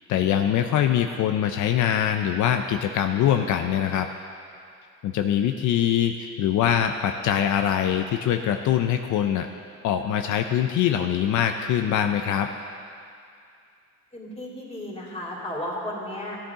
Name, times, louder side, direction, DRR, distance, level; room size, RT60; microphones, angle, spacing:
voice 1, 0.1-4.1 5.0-9.5 9.8-12.5, left 10 dB, 75° left, 6 dB, 0.5 m, -23 dB
voice 2, 14.1-16.4, left 1 dB, 20° left, -4 dB, 3.0 m, -34 dB
14.5 x 10.0 x 3.7 m, 2.4 s
cardioid pair, 90°, 30 cm